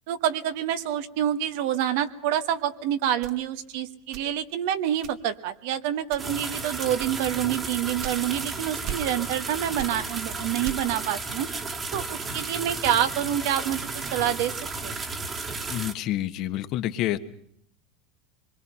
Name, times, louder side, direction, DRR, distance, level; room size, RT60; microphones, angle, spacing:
voice 1, 0.1-11.5 11.9-14.5 14.8-15.0, right 11 dB, 70° right, 10 dB, 1.5 m, -27 dB
sound 1, 3.2-4.6 5.0-5.5 6.0-6.5 7.0-8.5 8.8-9.5 9.8-11.1, right 11 dB, 55° right, 1.3 m, -38 dB
sound 2, 6.2-15.9, right 3 dB, 25° right, 1.9 m, -33 dB
voice 2, 15.7-17.2, left 13 dB, 50° left, 9 dB, 1.4 m, -28 dB
24.5 x 22.5 x 5.7 m, 0.68 s
supercardioid pair, 130°, 0 cm